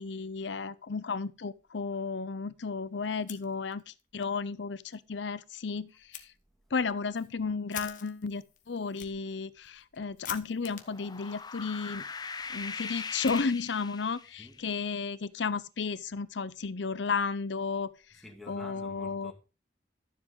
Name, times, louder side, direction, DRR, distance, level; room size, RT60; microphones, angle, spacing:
voice 1, 0.0-6.2 6.7-12.0 12.5-17.9 18.5-19.3, left 4 dB, 75° left, 0.7 m, -33 dB
Fire, 3.1-4.0 4.4-4.5 4.9-5.0 6.1-6.3 6.8-14.0, left 10 dB, 45° left, 1.3 m, -48 dB
sound 1, 10.8-14.5, left 5 dB, 20° left, 0.5 m, -40 dB
voice 2, 18.1-19.3, left 1 dB, ahead, 2.3 m, -49 dB
13.0 x 7.3 x 3.8 m
head